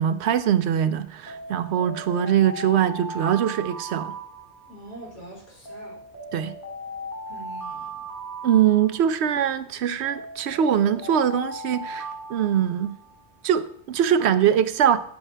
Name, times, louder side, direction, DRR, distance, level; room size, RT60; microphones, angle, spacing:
voice 1, 0.0-4.2 6.3-6.5 8.4-13.0 13.4-15.0, right 9 dB, 80° right, 0.9 m, -22 dB
Alarm, 1.3-5.0 5.6-9.4 10.0-13.3, right 1 dB, 20° left, 2.0 m, -37 dB
voice 2, 4.7-6.0 7.3-8.0, right 1 dB, 70° left, 4.5 m, -43 dB
9.4 x 8.5 x 3.3 m
omnidirectional pair, 1.1 m